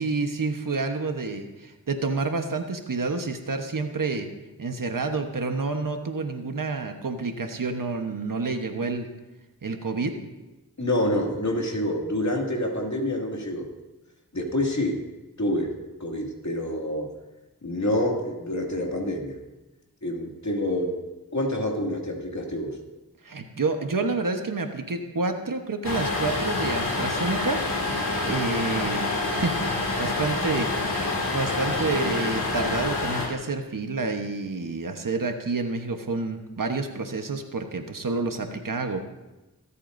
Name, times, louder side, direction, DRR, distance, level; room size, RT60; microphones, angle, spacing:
voice 1, 0.0-4.3 4.6-9.1 9.6-10.1 23.2-27.6 28.2-39.0, right 3 dB, 60° right, 5 dB, 1.2 m, -29 dB
voice 2, 10.8-13.7 14.3-15.0 15.4-15.7 16.0-17.1 17.6-19.3 20.0-20.9 21.3-22.8, left 1 dB, 50° left, 0 dB, 2.5 m, -27 dB
sound 1, 25.8-33.3, left 3 dB, 70° left, 2.5 m, -27 dB
24.5 x 8.4 x 2.7 m, 1.1 s
cardioid pair, 45°, 37 cm